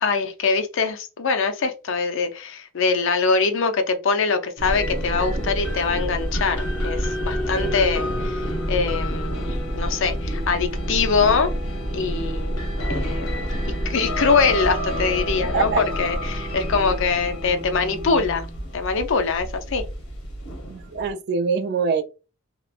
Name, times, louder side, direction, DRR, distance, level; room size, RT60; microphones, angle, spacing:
voice 1, 0.0-11.5 11.9-12.6 12.9-18.5 18.7-19.8, left 4 dB, 60° left, 0.5 m, -23 dB
sound 1, 4.6-21.1, equal, 90° left, 0.8 m, -27 dB
voice 2, 20.7-22.0, right 5 dB, 50° right, 0.3 m, -23 dB
3.0 x 2.0 x 2.3 m
head